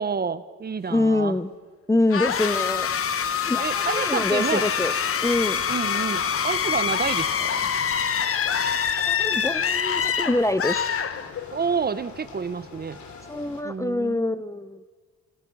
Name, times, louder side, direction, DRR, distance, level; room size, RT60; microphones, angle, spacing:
voice 1, 0.0-1.4 3.6-4.6 5.7-7.7 11.5-13.0 13.6-14.4, right 5 dB, 30° right, 14 dB, 1.0 m, -29 dB
voice 2, 0.9-1.5 1.9-2.9 3.4-4.9 5.2-5.6 9.1-10.8 13.3-14.8, left 2 dB, 10° left, 14 dB, 0.7 m, -25 dB
sound 1, 2.1-11.7, left 7 dB, 45° left, 1.2 m, -25 dB
sound 2, 4.5-13.6, left 4 dB, 70° left, 3.5 m, -45 dB
28.0 x 24.5 x 6.3 m, 1.5 s
cardioid pair, 90°, 30 cm